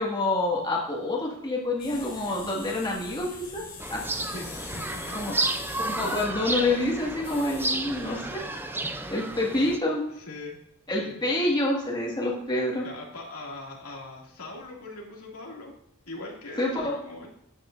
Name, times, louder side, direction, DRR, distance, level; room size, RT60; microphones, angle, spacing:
voice 1, 0.0-3.6 3.9-4.0 5.1-5.3 5.8-8.4 9.1-10.0 10.9-12.8 16.6-16.9, left 2 dB, 20° left, -3 dB, 1.9 m, -27 dB
sound 1, 1.8-8.5, left 5 dB, 40° left, 2.1 m, -44 dB
voice 2, 1.9-2.4 4.3-5.3 8.1-8.5 8.9-9.5 10.2-10.6 11.0-11.2 12.8-15.8 16.1-17.3, left 2 dB, 80° left, -2 dB, 2.4 m, -42 dB
sound 2, 3.8-9.8, right 2 dB, 10° right, 0.5 m, -32 dB
12.0 x 9.1 x 2.6 m, 0.77 s
head